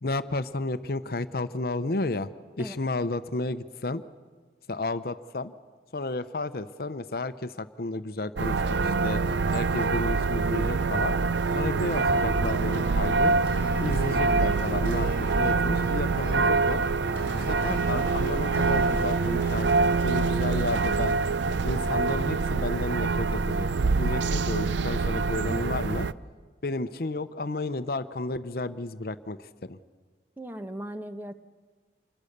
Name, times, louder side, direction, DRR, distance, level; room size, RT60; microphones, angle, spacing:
voice 1, 0.0-2.3 2.6-4.0 4.7-5.5 5.9-11.1 11.5-13.4 13.8-16.8 17.3-19.7 20.0-21.2 21.6-23.7 23.9-26.1 26.6-29.8, left 2 dB, 55° left, 12 dB, 0.7 m, -32 dB
sound 1, 8.4-26.1, right 4 dB, 85° right, 0.6 m, -25 dB
sound 2, 12.1-20.7, left 1 dB, 15° left, 3.7 m, -40 dB
voice 2, 30.4-31.3, right 1 dB, 10° right, 8 dB, 1.0 m, -38 dB
27.0 x 21.0 x 6.7 m, 1.5 s
head